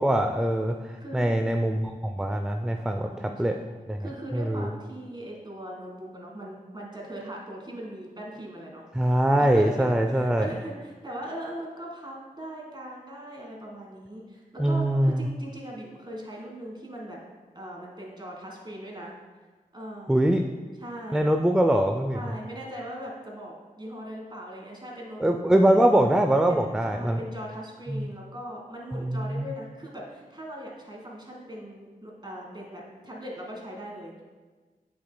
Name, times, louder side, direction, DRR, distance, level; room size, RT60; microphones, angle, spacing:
voice 1, 0.0-3.6 3.9-4.0 4.3-4.7 9.0-10.5 14.6-15.3 20.1-20.4 21.1-22.2 25.2-27.2 27.9-28.1 28.9-29.5, right 1 dB, 5° right, 4 dB, 0.3 m, -23 dB
voice 2, 1.0-1.6 2.7-3.7 4.0-8.8 9.4-17.2 17.5-19.1 19.7-20.4 20.8-21.3 22.1-25.8 26.5-26.6 26.9-34.2, right 1 dB, 30° right, -2 dB, 1.6 m, -40 dB
7.8 x 6.6 x 2.2 m, 1.4 s
wide cardioid pair, 65°, 16 cm